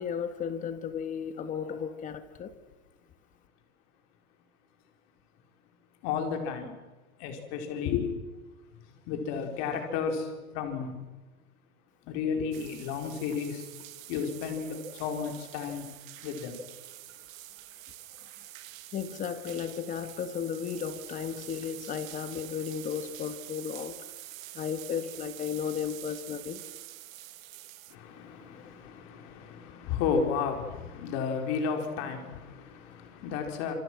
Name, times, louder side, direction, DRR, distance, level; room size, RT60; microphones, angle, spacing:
voice 1, 0.0-2.6 18.9-24.0 24.5-26.6 28.5-28.6, left 7 dB, 20° left, 1.5 m, -34 dB
voice 2, 6.0-6.7 7.2-8.2 8.7-11.0 12.1-13.7 14.1-15.9 16.2-16.6 27.9-33.7, left 6 dB, 35° left, 4.5 m, -33 dB
sound 1, 12.5-28.0, right 14 dB, 65° right, 1.6 m, -46 dB
27.0 x 27.0 x 6.2 m
supercardioid pair, 160°, 42 cm